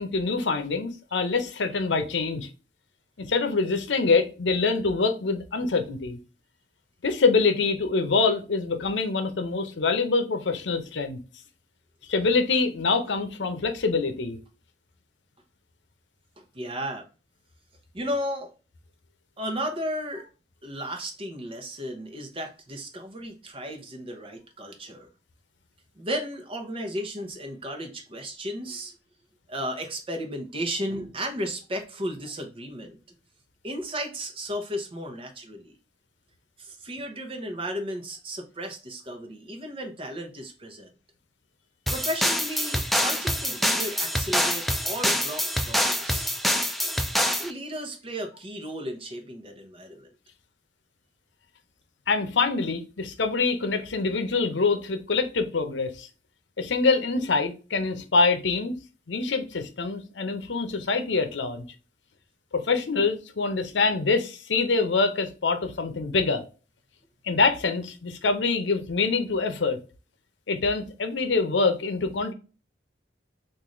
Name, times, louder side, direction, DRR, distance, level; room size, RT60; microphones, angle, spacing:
voice 1, 0.0-2.5 3.2-6.2 7.0-11.2 12.1-14.4 52.1-56.1 56.6-58.8 59.1-61.6 62.5-66.5 67.2-69.8 70.5-72.3, left 4 dB, 90° left, 0.7 m, -25 dB
voice 2, 16.4-17.1 17.9-18.5 19.4-20.3 20.6-25.1 26.0-29.0 29.5-33.0 33.6-35.7 36.6-40.9 41.9-46.3 47.4-50.1, equal, 30° right, 0.8 m, -34 dB
sound 1, 41.9-47.5, equal, ahead, 0.3 m, -26 dB
3.8 x 2.6 x 3.0 m
head